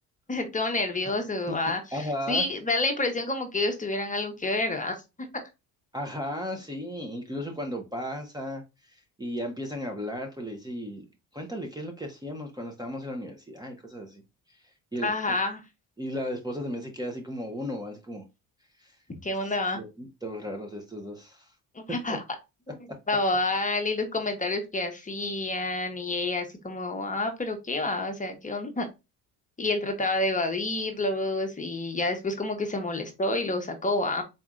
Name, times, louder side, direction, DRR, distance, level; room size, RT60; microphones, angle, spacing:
voice 1, 0.3-4.9 5.3-5.4 15.0-15.6 19.2-19.8 21.7-22.2 22.7-22.8 23.1-28.9 29.6-34.2, left 2 dB, 20° left, 0.9 m, -28 dB
voice 2, 1.9-2.4 5.9-8.6 9.2-11.0 11.3-14.2 14.9-15.4 16.0-18.2 18.8-18.9 19.7-21.5 21.9-22.2, equal, 10° right, 0.8 m, -35 dB
4.2 x 3.3 x 2.4 m
cardioid pair, 105°, 38 cm